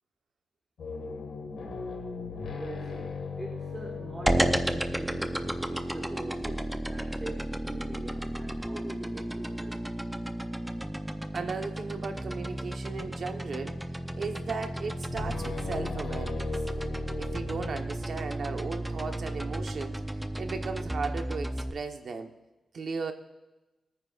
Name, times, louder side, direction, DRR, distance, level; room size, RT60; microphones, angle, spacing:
sound 1, 0.8-5.7 13.3-13.9 14.2-14.3 14.9-18.3, left 4 dB, 80° left, 1.6 m, -39 dB
voice 1, 2.5-9.9, right 2 dB, 25° right, 1 dB, 1.5 m, -43 dB
sound 2, 4.3-21.7, right 1 dB, 10° right, 0.6 m, -33 dB
voice 2, 11.3-13.8 14.1-16.6 17.2-20.0 20.3-22.3 22.7-23.1, right 4 dB, 65° right, 6 dB, 1.0 m, -36 dB
21.0 x 9.6 x 2.4 m, 1.0 s
wide cardioid pair, 95°, 0 cm